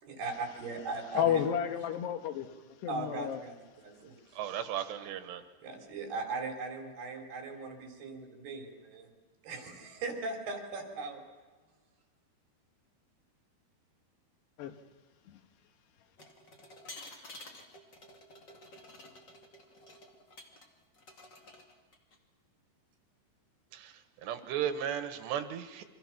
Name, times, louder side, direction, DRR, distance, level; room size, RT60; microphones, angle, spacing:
voice 1, 0.0-1.5 2.9-4.2 5.6-9.1 9.4-11.2, right 3 dB, 70° right, 5.7 m, -39 dB
voice 2, 1.2-2.5 2.8-3.4 14.6-14.7 15.3-15.4, left 9 dB, 80° left, 3.4 m, -31 dB
voice 3, 4.3-5.4 23.7-25.9, right 9 dB, 90° right, 3.5 m, -36 dB
sound 1, 16.2-20.7 20.9-22.1, left 2 dB, 35° left, 2.2 m, -51 dB
28.5 x 24.5 x 6.1 m
omnidirectional pair, 4.8 m